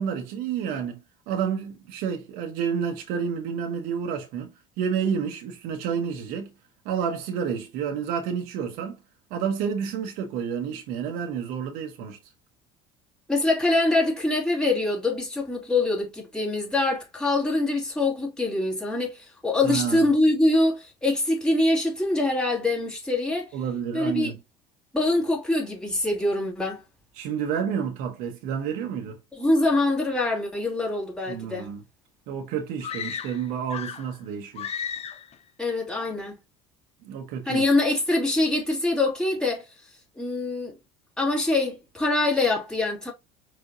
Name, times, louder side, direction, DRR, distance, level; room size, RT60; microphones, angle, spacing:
voice 1, 0.0-6.5 6.8-9.0 9.3-12.2 19.6-20.1 23.5-24.4 27.1-29.2 31.3-31.8 32.3-34.7 37.0-37.6, right 7 dB, 65° right, 1.0 m, -30 dB
voice 2, 13.3-23.5 23.9-24.3 24.9-26.8 29.3-31.7 35.6-36.3 37.5-39.6 40.2-40.7 41.2-43.1, left 2 dB, 5° left, 2.6 m, -24 dB
sound 1, 32.8-34.2 34.6-35.4, left 7 dB, 40° left, 0.9 m, -34 dB
4.9 x 4.0 x 2.6 m
hypercardioid pair, 80°, 16 cm